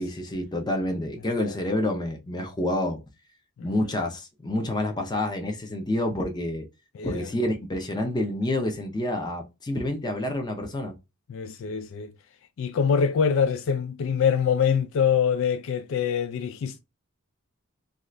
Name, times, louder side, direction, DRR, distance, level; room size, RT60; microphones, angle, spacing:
voice 1, 0.0-3.0 3.6-6.7 7.0-10.9, left 1 dB, 20° left, 0.6 m, -28 dB
voice 2, 6.9-7.3 11.3-12.1 12.6-16.8, left 7 dB, 60° left, 0.3 m, -24 dB
2.6 x 2.4 x 3.2 m
head